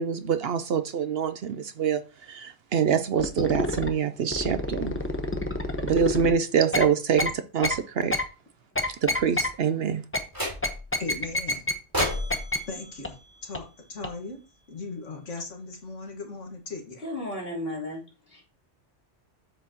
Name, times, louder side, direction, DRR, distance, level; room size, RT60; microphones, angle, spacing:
voice 1, 0.0-5.0 5.8-8.1 9.0-10.0, right 7 dB, 60° right, 11 dB, 0.8 m, -25 dB
sound 1, 3.2-3.9 4.3-6.3 6.7-6.9 7.2-7.3 7.6-7.8 8.1-8.2 8.7-9.5 10.1-10.2 10.6-11.7 12.0-12.1 12.3-12.6 13.0-13.1 13.5-13.6 14.0-14.1, left 2 dB, 10° left, 0.9 m, -27 dB
sound 2, 10.3-11.0 11.9-14.2, equal, 15° right, 3.7 m, -33 dB
voice 2, 11.0-11.6 12.7-13.2 13.4-14.4 14.7-17.0, left 3 dB, 80° left, 2 dB, 1.9 m, -38 dB
voice 3, 17.0-18.0 18.3-18.4, left 1 dB, 50° left, -3 dB, 3.6 m, -33 dB
7.9 x 7.6 x 2.9 m, 0.31 s
omnidirectional pair, 1.3 m